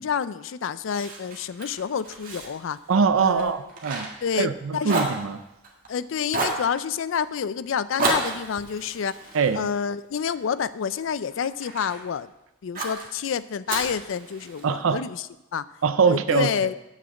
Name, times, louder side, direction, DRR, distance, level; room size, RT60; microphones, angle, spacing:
voice 1, 0.0-2.8 3.2-3.5 4.2-5.0 5.9-12.3 12.6-15.2 15.5-15.6 16.1-16.7, left 7 dB, 75° left, 15 dB, 0.4 m, -28 dB
Fire, 0.9-4.6 4.8-5.9 6.3-6.7 8.0-10.4 10.9-12.0 12.7-13.1 13.7-14.8, right 3 dB, 45° right, 1.7 m, -31 dB
voice 2, 2.9-4.1 4.4-5.4 9.3-9.6 14.6-15.0 15.8-16.5, right 5 dB, 85° right, 10 dB, 0.5 m, -22 dB
7.4 x 6.4 x 6.9 m, 0.93 s
head